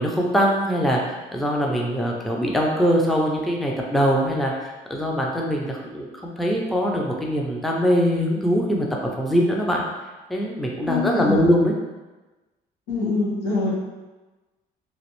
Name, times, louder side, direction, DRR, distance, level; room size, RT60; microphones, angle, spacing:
voice 1, 0.0-9.8 10.3-11.7, equal, ahead, -1 dB, 0.4 m, -22 dB
voice 2, 10.9-11.4 12.9-13.7, left 3 dB, 80° left, -6 dB, 1.2 m, -24 dB
3.0 x 2.5 x 2.9 m, 1.1 s
cardioid pair, 110°, 17 cm